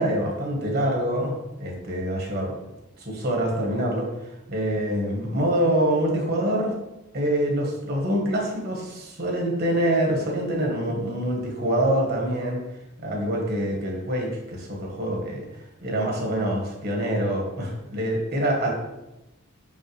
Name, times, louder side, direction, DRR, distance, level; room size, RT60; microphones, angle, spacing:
voice 1, 0.0-2.5 3.0-4.1 4.5-6.7 7.1-12.6 13.0-15.5 15.8-18.7, right 1 dB, 50° right, 0 dB, 1.4 m, -25 dB
5.6 x 5.5 x 3.2 m, 0.97 s
head